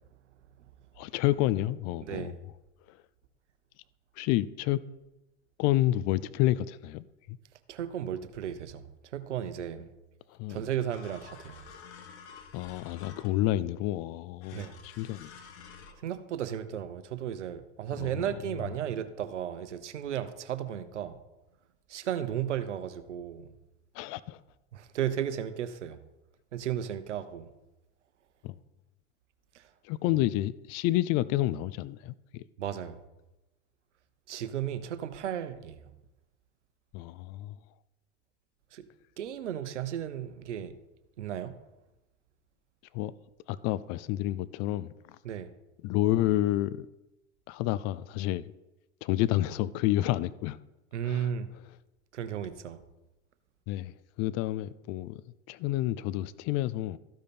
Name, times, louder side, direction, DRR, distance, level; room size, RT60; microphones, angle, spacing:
voice 1, 1.0-2.4 2.9-3.0 4.2-4.8 5.6-7.4 10.3-10.6 12.5-15.3 18.0-18.3 23.9-24.4 28.4-28.6 29.8-32.4 36.9-37.6 42.9-43.1 43.5-45.2 45.8-46.9 47.5-48.5 49.0-50.6 51.0-51.3 53.7-55.2 55.5-57.0, left 15 dB, 45° left, 0.5 m, -29 dB
voice 2, 2.0-2.4 7.7-9.9 10.5-11.6 14.5-14.8 16.0-21.2 21.9-23.6 24.7-26.0 26.5-27.5 29.5-29.7 32.6-33.0 34.3-35.9 38.7-38.9 39.2-40.7 41.2-41.6 45.2-45.5 50.9-51.5 52.1-52.8, right 10 dB, 90° right, 0.9 m, -34 dB
sound 1, 10.9-13.6 14.4-15.9, left 6 dB, 70° left, 1.3 m, -49 dB
14.0 x 5.2 x 4.3 m
hypercardioid pair, 95°, 34 cm